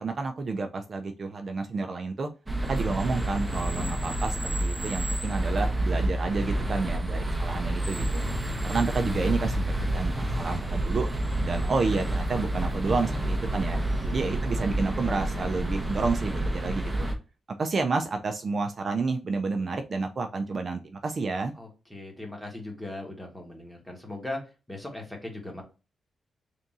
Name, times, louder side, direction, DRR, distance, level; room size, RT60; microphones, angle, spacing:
voice 1, 0.0-2.3 2.7-8.2 8.6-11.1 11.4-13.8 14.1-17.1 17.6-21.5, right 4 dB, 45° right, 5 dB, 0.4 m, -30 dB
sound 1, 2.5-17.1, right 1 dB, 15° right, 0.7 m, -29 dB
voice 2, 13.7-14.4 21.6-25.6, left 2 dB, 5° left, 1 dB, 1.2 m, -39 dB
3.5 x 2.6 x 4.0 m, 0.32 s
cardioid pair, 120°, 0 cm